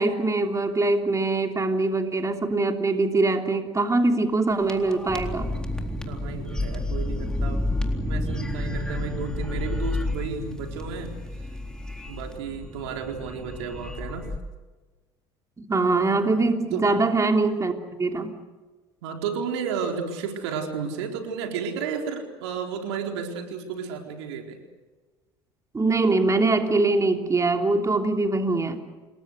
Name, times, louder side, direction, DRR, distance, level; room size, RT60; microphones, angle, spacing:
voice 1, 0.0-5.6 15.6-17.7 18.0-18.3 25.7-28.8, right 3 dB, 20° right, 4 dB, 3.1 m, -23 dB
sound 1, 4.5-14.4, left 1 dB, 5° left, 3.9 m, -30 dB
voice 2, 6.0-7.7 8.0-11.1 12.1-14.3 16.7-16.9 19.0-24.6, right 6 dB, 75° right, 3 dB, 4.2 m, -32 dB
29.0 x 21.0 x 6.6 m, 1.3 s
hypercardioid pair, 65°, 14 cm